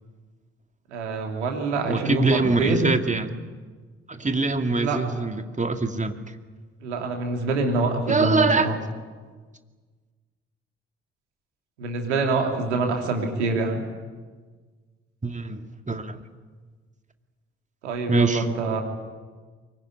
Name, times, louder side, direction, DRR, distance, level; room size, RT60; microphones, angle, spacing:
voice 1, 0.9-2.9 4.8-5.0 6.8-8.8 11.8-13.8 17.8-18.8, right 3 dB, 80° right, 3 dB, 3.1 m, -25 dB
voice 2, 1.9-3.3 4.1-6.2 8.1-8.7 15.2-16.2 18.1-18.5, right 3 dB, 20° right, 7 dB, 2.4 m, -23 dB
24.0 x 21.5 x 9.6 m, 1.5 s
figure-of-eight pair, 40°, 34 cm